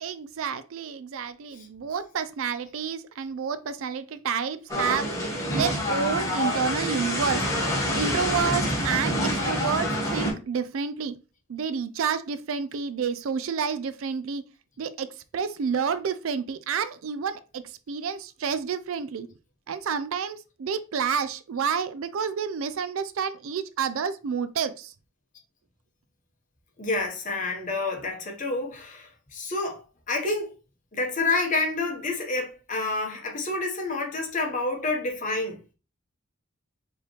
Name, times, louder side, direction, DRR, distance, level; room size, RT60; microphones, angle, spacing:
voice 1, 0.0-5.1 5.5-7.4 7.9-11.1 11.5-14.4 14.8-19.3 19.7-24.9, right 6 dB, 70° right, 0.4 m, -29 dB
sound 1, 4.7-10.3, equal, 15° left, 1.2 m, -27 dB
voice 2, 26.8-30.5 30.9-35.7, left 3 dB, 35° left, 1.0 m, -29 dB
4.8 x 3.0 x 3.0 m
head